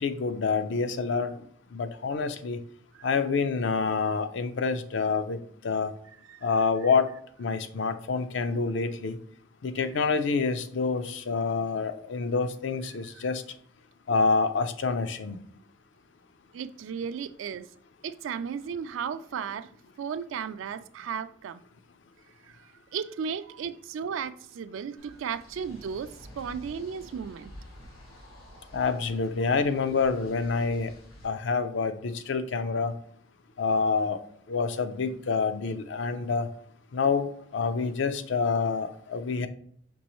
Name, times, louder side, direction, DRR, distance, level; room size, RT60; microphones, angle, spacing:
voice 1, 0.0-1.5 1.7-2.6 3.0-5.9 6.4-7.1 7.4-9.2 9.6-13.4 14.1-15.4 28.7-30.9 31.2-32.9 33.6-34.2 34.5-36.5 36.9-39.5, left 4 dB, 65° left, 0.5 m, -27 dB
voice 2, 16.5-17.7 18.0-19.7 20.0-21.6 22.5-27.5, right 7 dB, 70° right, 0.3 m, -35 dB
sound 1, 25.0-31.3, equal, 90° left, 1.4 m, -50 dB
5.3 x 3.0 x 3.0 m
head